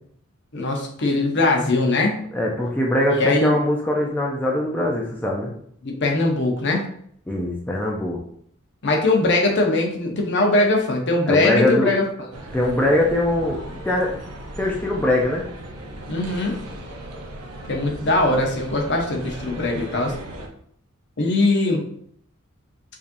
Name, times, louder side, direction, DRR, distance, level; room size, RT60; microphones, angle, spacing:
voice 1, 0.5-2.2 3.1-3.6 5.8-6.8 8.8-12.0 16.1-16.5 17.7-20.1 21.2-21.8, left 2 dB, 55° left, 1 dB, 0.8 m, -21 dB
voice 2, 2.3-5.5 7.3-8.2 11.3-11.9 12.5-13.6 13.8-14.2 14.6-15.4, left 1 dB, 10° left, -2 dB, 0.4 m, -22 dB
sound 1, 12.3-20.5, right 1 dB, 90° right, 0.7 m, -37 dB
4.8 x 2.7 x 2.6 m, 0.65 s
head